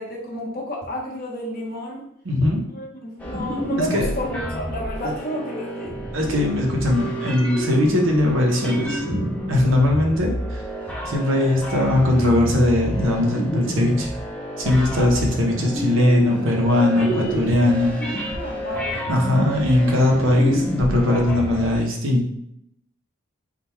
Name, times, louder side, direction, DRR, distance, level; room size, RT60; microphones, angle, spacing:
voice 1, 0.0-2.0 2.7-6.0 18.3-19.1, equal, 45° left, -3 dB, 1.1 m, -31 dB
voice 2, 2.2-2.6 3.8-4.1 5.0-5.1 6.1-10.6 11.1-14.1 14.6-18.2 19.1-22.3, left 1 dB, 65° right, 0 dB, 0.9 m, -20 dB
sound 1, 3.2-21.8, equal, 5° left, 0.6 m, -29 dB
3.7 x 2.4 x 4.4 m, 0.73 s
head